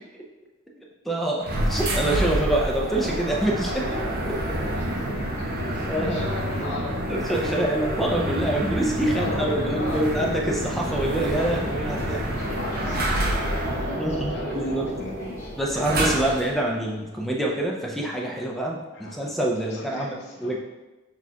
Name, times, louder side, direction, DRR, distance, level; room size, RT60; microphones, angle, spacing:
voice 1, 1.1-3.9 5.9-6.2 7.1-12.3 13.6-14.9 15.6-20.6, right 1 dB, ahead, -1 dB, 0.5 m, -26 dB
sound 1, 1.4-16.6, right 1 dB, 50° right, 0.6 m, -28 dB
voice 2, 4.8-5.2 5.7-6.9 7.4-7.9 9.1-10.1 12.4-15.4 16.3-16.4 18.9-19.4 19.6-20.5, left 2 dB, 60° left, -4 dB, 0.7 m, -36 dB
sound 2, 10.7-17.5, equal, 20° left, 1.3 m, -44 dB
6.1 x 2.4 x 2.8 m, 1.1 s
head